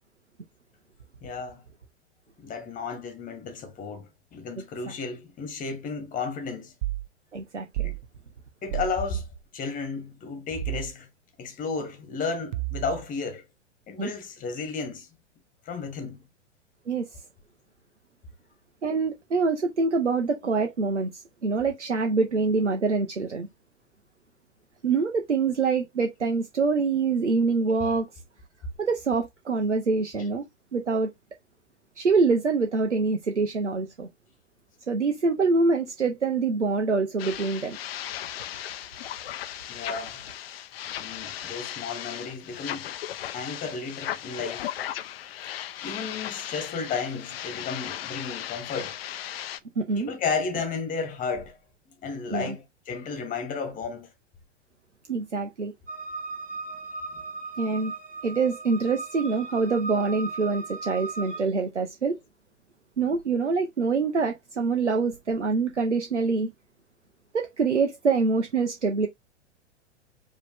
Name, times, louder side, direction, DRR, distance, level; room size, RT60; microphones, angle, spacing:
voice 1, 1.2-1.6 2.4-6.7 7.8-7.9 8.6-9.2 9.5-11.1 11.4-13.4 13.9-15.1 15.6-16.2 39.7-40.2 41.0-42.9 43.3-44.7 45.8-49.0 49.9-51.6 52.0-54.1, left 4 dB, 25° left, 1.5 m, -33 dB
sound 1, 6.8-7.1 7.7-8.0 8.7-9.0 10.6-10.9 12.5-13.0, right 18 dB, 45° right, 0.6 m, -31 dB
voice 2, 7.3-7.9 14.0-14.1 16.9-17.2 18.8-23.5 24.8-28.1 28.8-30.4 30.7-31.1 32.0-34.1 34.9-37.8 49.8-50.1 52.3-52.6 55.1-55.7 57.6-57.9 58.2-62.2 63.0-66.5 67.3-69.1, right 4 dB, 90° right, 0.8 m, -25 dB
sound 2, 37.2-49.6, left 11 dB, 55° left, 0.6 m, -36 dB
sound 3, 55.9-61.4, right 3 dB, 25° right, 1.9 m, -37 dB
4.8 x 3.1 x 3.5 m
figure-of-eight pair, 105°, 35 cm